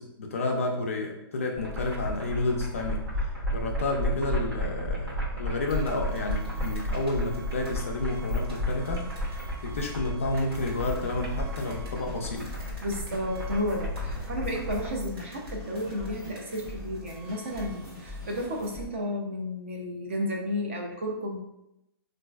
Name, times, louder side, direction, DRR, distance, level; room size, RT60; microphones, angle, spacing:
voice 1, 0.0-3.0 3.5-9.1 9.6-12.5, left 2 dB, 35° left, 1 dB, 0.3 m, -30 dB
sound 1, 1.6-14.9, equal, 65° right, 0.9 m, -33 dB
sound 2, 5.7-18.6, right 2 dB, 90° right, 1.5 m, -47 dB
sound 3, 10.5-18.9, left 2 dB, ahead, 1.0 m, -42 dB
voice 2, 12.8-21.5, left 1 dB, 30° right, 0 dB, 0.4 m, -32 dB
4.0 x 2.5 x 2.2 m, 0.85 s
hypercardioid pair, 180°, 13 cm